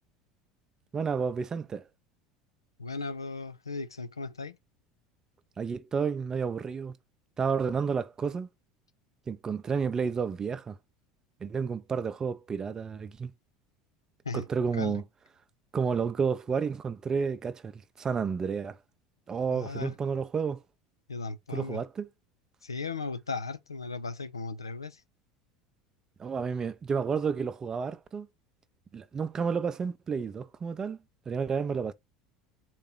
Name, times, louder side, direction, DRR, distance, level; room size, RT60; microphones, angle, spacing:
voice 1, 0.9-1.9 5.6-6.9 7.4-8.5 9.3-10.8 11.4-13.3 14.3-15.0 15.7-18.8 19.3-20.6 21.5-22.1 26.2-28.3 28.9-31.0 31.3-31.9, right 6 dB, 25° right, 0.5 m, -31 dB
voice 2, 2.8-4.6 14.2-14.5 14.7-15.0 19.5-19.9 21.1-21.8 22.6-25.0, left 4 dB, 85° left, 0.4 m, -36 dB
4.0 x 2.9 x 3.7 m
figure-of-eight pair, 70°, 2 cm